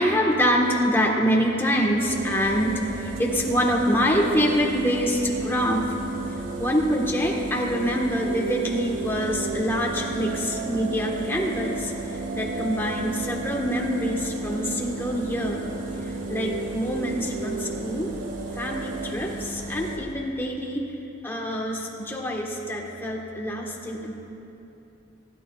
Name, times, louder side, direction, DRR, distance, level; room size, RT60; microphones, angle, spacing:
voice 1, 0.0-5.9 6.3-15.6 16.0-18.1 18.5-21.0 21.2-24.2, equal, 10° left, -2 dB, 1.5 m, -25 dB
sound 1, 2.1-19.1, right 5 dB, 45° right, 0.3 m, -35 dB
sound 2, 2.1-20.0, right 1 dB, 80° right, 1.5 m, -36 dB
25.0 x 11.5 x 2.5 m, 3.0 s
head